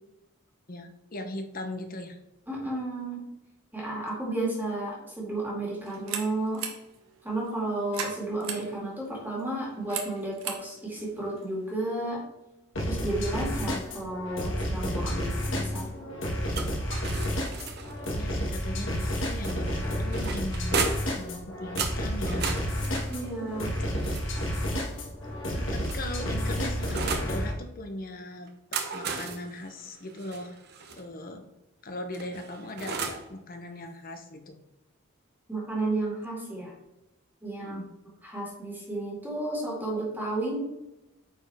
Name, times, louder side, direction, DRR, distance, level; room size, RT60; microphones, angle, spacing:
voice 1, 0.7-2.2 18.1-20.7 21.1-22.5 25.5-30.6 31.0-31.5 31.8-34.6 37.6-37.9, left 1 dB, 45° left, 6 dB, 0.8 m, -39 dB
voice 2, 2.5-3.3 3.7-6.7 7.2-12.2 12.9-15.9 23.1-23.7 35.5-36.7 37.4-37.8 38.2-40.6, right 2 dB, 10° right, -4 dB, 2.0 m, -32 dB
sound 1, 5.8-12.1, right 7 dB, 85° right, 1.1 m, -40 dB
sound 2, 12.8-27.5, equal, 65° left, 1.7 m, -31 dB
sound 3, 16.5-18.1 19.4-21.2 21.8-24.7 25.5-27.3 28.5-31.0 32.1-33.3, right 4 dB, 50° right, 0.8 m, -35 dB
8.8 x 4.4 x 3.4 m, 0.93 s
head